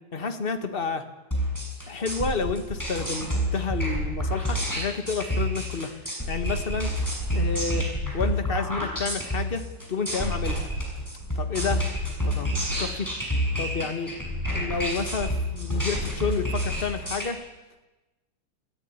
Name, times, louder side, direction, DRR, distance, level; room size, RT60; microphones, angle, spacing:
voice 1, 0.1-1.0 1.9-5.9 6.3-6.9 7.3-7.9 8.1-10.6 11.3-11.9 12.2-13.1 13.6-14.1 14.5-17.4, left 5 dB, 30° left, 7 dB, 1.0 m, -30 dB
sound 1, 1.3-17.3, equal, 5° left, 6.5 m, -28 dB
27.0 x 14.5 x 9.8 m, 1.1 s
omnidirectional pair, 3.4 m